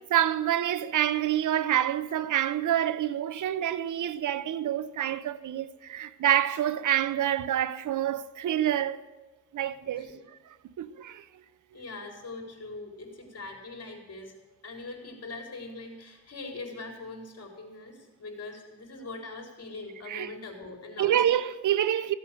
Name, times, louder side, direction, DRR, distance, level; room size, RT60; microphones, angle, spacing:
voice 1, 0.1-9.1 9.5-10.1 10.8-11.2 20.1-20.3 21.0-22.1, right 11 dB, 85° right, 0.7 m, -27 dB
voice 2, 11.7-14.3 14.6-21.2, left 3 dB, 55° left, 4.5 m, -42 dB
16.0 x 8.1 x 7.6 m
cardioid pair, 75°, 30 cm